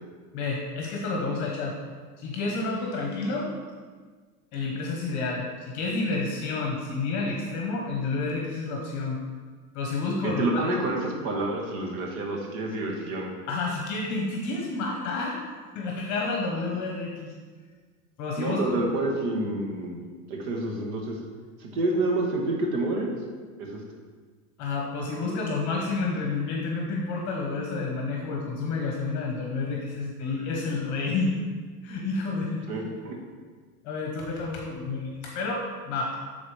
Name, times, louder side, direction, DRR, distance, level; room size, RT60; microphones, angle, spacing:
voice 1, 0.3-1.8 2.2-3.5 4.5-9.2 9.7-10.6 13.5-15.4 15.7-17.3 18.2-18.6 24.6-31.4 31.8-32.7 33.8-36.1, left 3 dB, 40° left, 0 dB, 1.0 m, -30 dB
voice 2, 10.2-13.3 18.4-20.0 20.3-21.2 21.6-23.1 23.6-23.8 32.7-33.1, right 2 dB, 65° right, 1 dB, 1.6 m, -28 dB
9.6 x 4.0 x 3.3 m, 1.5 s
supercardioid pair, 125°, 46 cm